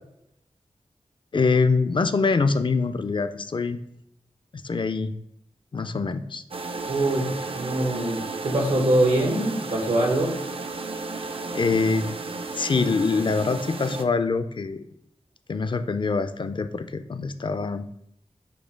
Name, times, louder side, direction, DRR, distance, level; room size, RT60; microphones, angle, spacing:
voice 1, 1.3-3.8 4.5-5.1 5.7-6.4 11.5-12.1 12.5-14.8 15.5-17.9, left 4 dB, 45° left, 10 dB, 0.4 m, -24 dB
sound 1, 6.5-14.0, right 3 dB, 50° right, 0.4 m, -33 dB
voice 2, 6.9-10.4, right 1 dB, 90° right, 0 dB, 1.2 m, -23 dB
4.3 x 2.6 x 4.5 m, 0.74 s
cardioid pair, 45°, 12 cm